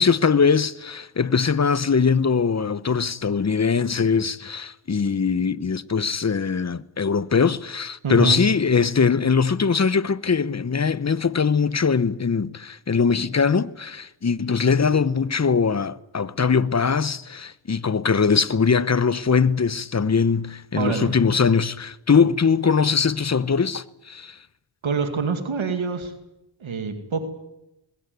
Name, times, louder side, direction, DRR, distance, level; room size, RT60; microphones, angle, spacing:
voice 1, 0.0-24.4, left 5 dB, 35° left, 0.9 m, -21 dB
voice 2, 8.0-8.4 20.8-21.1 24.8-26.1 26.6-27.2, right 5 dB, 90° right, 2.4 m, -25 dB
20.5 x 16.5 x 9.5 m
cardioid pair, 50°, 46 cm